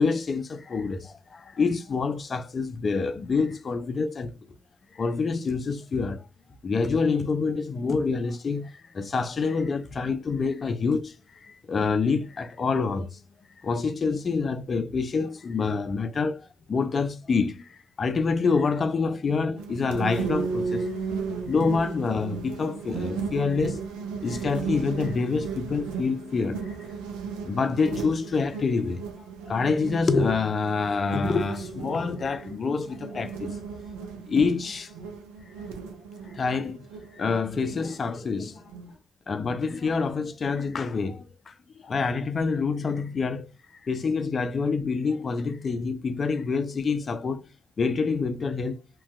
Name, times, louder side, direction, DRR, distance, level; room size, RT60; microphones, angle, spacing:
voice 1, 0.0-4.3 4.9-6.2 6.6-11.2 11.4-13.2 13.6-20.9 21.5-23.8 24.2-26.8 27.4-29.0 29.5-33.6 34.3-34.9 36.3-36.8 37.1-38.6 39.3-43.5 43.8-47.4 47.8-48.8, left 4 dB, 45° left, 0.4 m, -27 dB
sound 1, 19.6-38.9, right 5 dB, 85° right, 0.5 m, -35 dB
2.9 x 2.6 x 2.3 m
hypercardioid pair, 45°, 0 cm